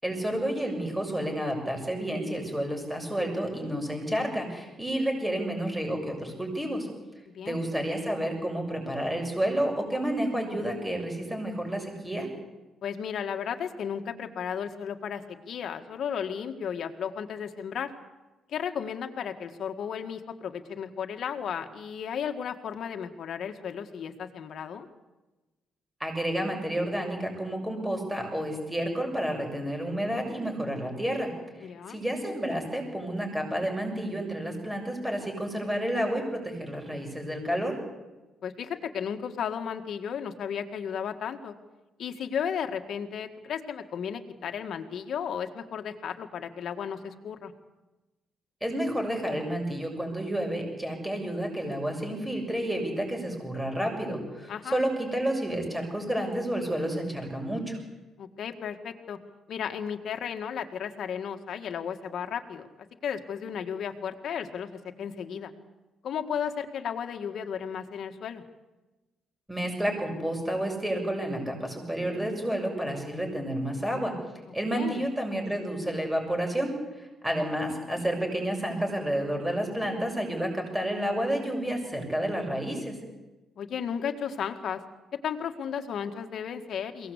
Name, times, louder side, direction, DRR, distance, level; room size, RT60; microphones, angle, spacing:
voice 1, 0.0-6.9 7.4-12.3 26.0-31.3 31.6-37.7 48.6-57.8 69.5-74.1 74.5-83.0, right 1 dB, 5° right, 2 dB, 6.8 m, -30 dB
voice 2, 7.3-7.6 12.8-17.9 18.5-24.9 31.6-32.0 38.4-41.5 42.0-47.5 54.5-54.8 58.2-59.2 59.5-62.7 63.0-65.5 66.0-68.4 74.7-75.1 83.6-84.8 85.2-87.1, left 7 dB, 65° left, 5 dB, 1.8 m, -34 dB
22.5 x 18.0 x 8.3 m, 1.1 s
cardioid pair, 90°, 0 cm